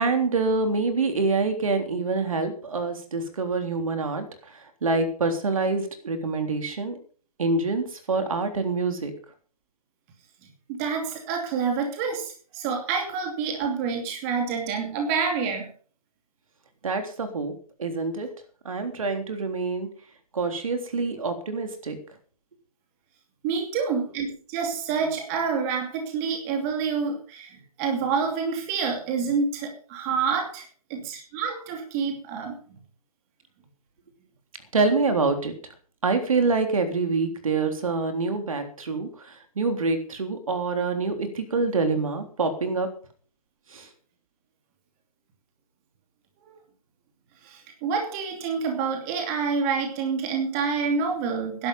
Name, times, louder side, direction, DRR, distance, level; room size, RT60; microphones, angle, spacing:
voice 1, 0.0-6.9 7.4-9.1 16.8-17.5 17.8-18.3 18.7-19.9 20.3-22.0 34.7-35.5 36.0-42.9 43.7-43.9, right 3 dB, 65° right, 7 dB, 3.5 m, -26 dB
voice 2, 10.7-15.7 23.4-30.6 30.9-32.6 47.4-51.7, right 5 dB, 25° right, 3 dB, 2.7 m, -27 dB
12.5 x 11.5 x 5.6 m, 0.42 s
hypercardioid pair, 150°, 19 cm